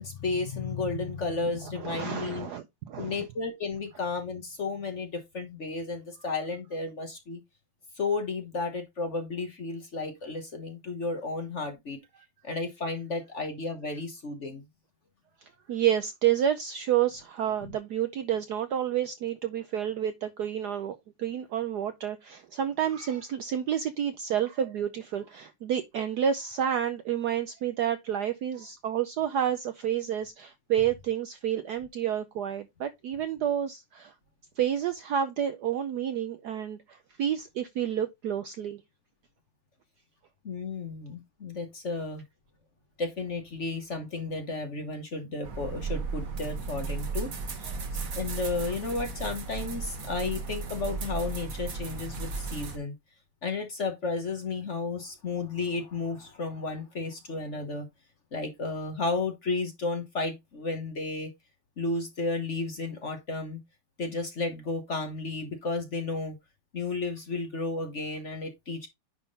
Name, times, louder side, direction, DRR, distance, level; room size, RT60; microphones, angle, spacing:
voice 1, 0.0-2.5 3.0-7.4 8.0-12.0 12.4-14.6 40.4-42.2 43.0-52.9 53.4-57.9 58.3-61.3 61.8-63.6 64.0-66.4 66.7-68.9, left 3 dB, 45° left, 1.2 m, -33 dB
voice 2, 1.8-3.3 15.4-34.1 34.6-38.8, right 9 dB, 70° right, 0.9 m, -29 dB
sound 1, 45.4-52.8, right 4 dB, 45° right, 1.6 m, -35 dB
9.9 x 3.6 x 4.0 m
omnidirectional pair, 2.3 m